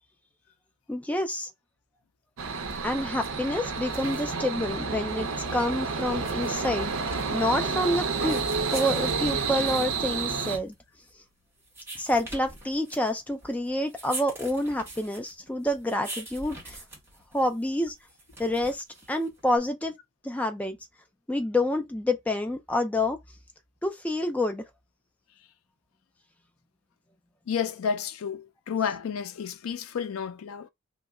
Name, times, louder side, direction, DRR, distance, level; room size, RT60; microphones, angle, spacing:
voice 1, 0.9-1.5 2.8-8.4 8.7-10.7 12.0-16.8 17.3-17.9 18.4-19.9 20.2-20.8 21.3-23.2 23.8-24.6, left 1 dB, 5° left, 0.3 m, -28 dB
sound 1, 2.4-10.6, right 4 dB, 75° right, 0.6 m, -30 dB
sound 2, 3.7-19.6, right 2 dB, 10° right, 0.8 m, -44 dB
voice 2, 27.5-30.7, left 7 dB, 80° left, 0.4 m, -31 dB
2.9 x 2.1 x 3.5 m
head